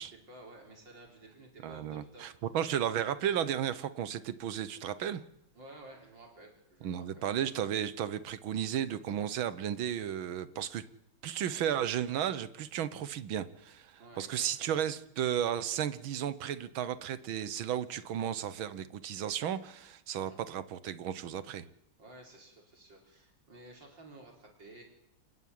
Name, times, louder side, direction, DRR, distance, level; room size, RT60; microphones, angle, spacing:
voice 1, 0.0-2.3 5.5-7.3 14.0-14.8 20.2-20.4 22.0-24.8, right 2 dB, 60° right, 0 dB, 5.1 m, -53 dB
voice 2, 1.6-5.2 6.8-10.8 11.2-21.7, right 9 dB, 75° right, 15 dB, 1.8 m, -34 dB
28.5 x 9.9 x 9.5 m, 0.86 s
omnidirectional pair, 2.2 m